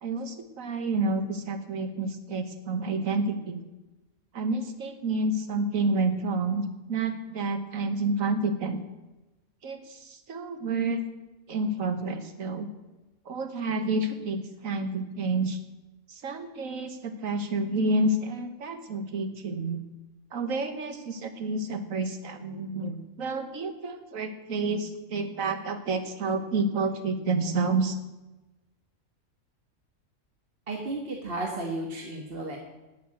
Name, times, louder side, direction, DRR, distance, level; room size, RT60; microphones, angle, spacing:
voice 1, 0.0-3.6 4.3-8.8 9.6-11.0 11.5-12.7 13.2-15.6 16.1-19.8 20.3-28.0, right 3 dB, 70° right, 8 dB, 1.6 m, -29 dB
voice 2, 30.7-32.6, right 2 dB, 45° right, 0 dB, 1.6 m, -33 dB
11.5 x 8.8 x 7.6 m, 1.1 s
omnidirectional pair, 1.5 m